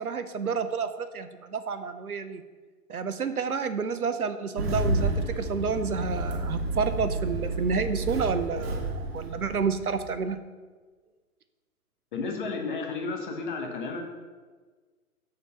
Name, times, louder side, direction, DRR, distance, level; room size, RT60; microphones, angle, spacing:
voice 1, 0.0-2.4 2.9-10.4, right 5 dB, 75° right, 11 dB, 0.7 m, -30 dB
Engine starting, 4.6-10.1, right 2 dB, 45° right, 1.1 m, -30 dB
voice 2, 12.1-14.1, left 4 dB, 35° left, 3 dB, 1.0 m, -32 dB
6.5 x 4.4 x 5.5 m, 1.4 s
figure-of-eight pair, 120°, 45 cm